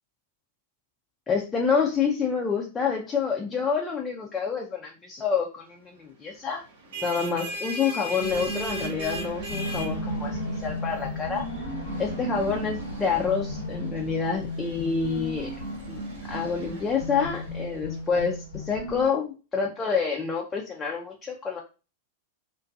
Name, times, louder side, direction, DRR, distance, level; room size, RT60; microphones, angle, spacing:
voice 1, 1.3-6.6 6.9-11.4 12.0-15.5 15.9-16.0 16.3-21.6, left 6 dB, 20° left, -1 dB, 0.5 m, -28 dB
sound 1, 6.7-18.0, right 1 dB, 65° right, 0.7 m, -39 dB
sound 2, 8.2-19.1, equal, 75° left, 0.8 m, -34 dB
2.4 x 2.2 x 2.5 m, 0.32 s
hypercardioid pair, 100°, 0 cm